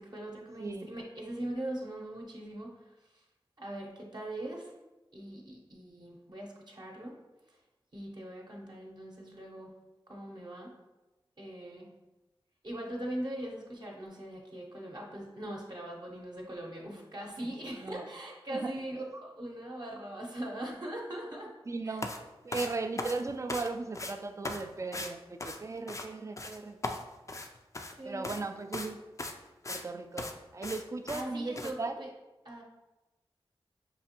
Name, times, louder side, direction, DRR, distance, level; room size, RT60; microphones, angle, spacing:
voice 1, 0.0-3.3 3.6-4.7 5.1-7.2 7.5-7.6 7.9-9.7 10.1-10.7 11.4-11.9 12.6-21.6 21.8-22.0 28.0-28.4 31.1-32.1 32.4-32.6, right 1 dB, 45° right, -2 dB, 0.8 m, -41 dB
voice 2, 17.4-18.1 18.5-18.7 21.7-22.1 22.4-26.8 28.0-29.0 29.7-32.0, right 3 dB, 30° right, 7 dB, 0.3 m, -37 dB
sound 1, 22.0-22.2 22.5-23.7 23.9-24.1 24.4-24.6 24.9-25.1 25.4-26.1 26.4-26.6 26.8-27.9 28.2-28.4 28.7-28.9 29.2-29.8 30.2-30.3 30.6-30.8 31.1-31.2 31.6-31.7, left 2 dB, 35° left, 0.4 m, -38 dB
5.4 x 2.4 x 2.9 m, 1.1 s
cardioid pair, 45°, 10 cm